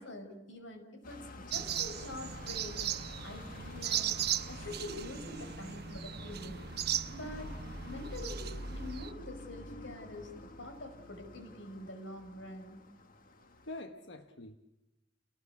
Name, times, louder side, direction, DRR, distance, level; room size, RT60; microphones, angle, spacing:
voice 1, 0.0-2.8 3.2-4.2 4.5-6.7 7.1-7.6 7.9-12.8, left 1 dB, 90° left, 6 dB, 5.6 m, -45 dB
sound 1, 1.0-13.8, left 1 dB, 50° left, 1.7 m, -48 dB
sound 2, 1.5-9.1, right 9 dB, 60° right, 0.9 m, -38 dB
Bass guitar, 6.1-12.4, left 1 dB, 30° left, 2.7 m, -65 dB
voice 2, 13.7-14.6, left 2 dB, 65° left, 6 dB, 1.3 m, -46 dB
30.0 x 19.0 x 8.5 m, 0.99 s
head